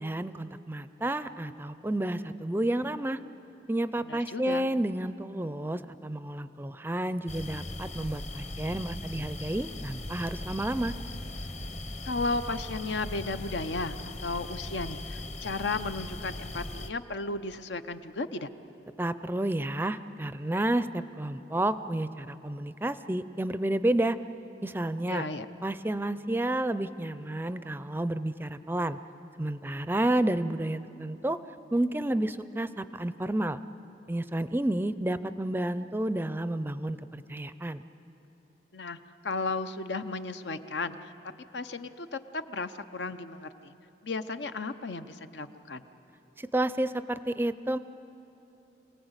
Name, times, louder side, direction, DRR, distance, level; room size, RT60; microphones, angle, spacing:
voice 1, 0.0-3.2 3.7-10.9 19.0-24.2 24.6-25.3 25.6-29.0 29.4-31.4 31.7-33.6 34.1-37.8 46.4-47.8, right 1 dB, 10° right, 13 dB, 0.4 m, -30 dB
voice 2, 4.0-4.7 12.0-18.5 25.1-25.5 38.7-39.0 39.2-41.1 41.5-43.7 44.0-45.8, left 3 dB, 85° left, 10 dB, 0.8 m, -34 dB
sound 1, 7.3-16.9, left 1 dB, 40° left, 1.0 m, -39 dB
26.5 x 18.0 x 8.1 m, 3.0 s
head